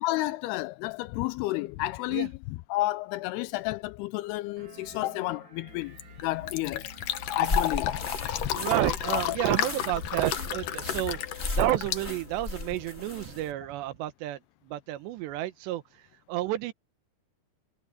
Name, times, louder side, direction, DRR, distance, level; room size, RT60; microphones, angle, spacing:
voice 1, 0.0-6.0 6.2-6.9 7.4-8.0 9.1-9.4, left 18 dB, 85° left, 2.4 m, -31 dB
sound 1, 4.6-11.2, right 10 dB, 45° right, 1.6 m, -52 dB
Fill (with liquid), 5.7-12.8, left 11 dB, 65° left, 2.3 m, -32 dB
sound 2, 7.4-13.5, left 2 dB, 20° left, 2.0 m, -36 dB
voice 2, 8.5-11.2 11.5-14.4 14.7-15.8 16.3-16.7, right 14 dB, 85° right, 3.3 m, -30 dB
omnidirectional pair, 4.9 m